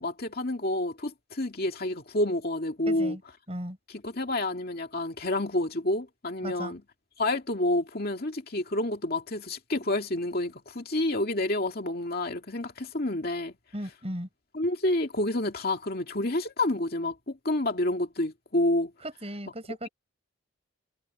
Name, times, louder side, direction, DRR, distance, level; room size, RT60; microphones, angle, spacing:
voice 1, 0.0-3.2 3.9-6.8 7.2-13.5 14.5-18.9 19.7-19.9, left 1 dB, 45° left, 2.4 m, -29 dB
voice 2, 2.9-3.2 3.5-3.8 6.4-6.7 13.7-14.3 19.0-19.9, equal, 30° right, 6.6 m, -36 dB
head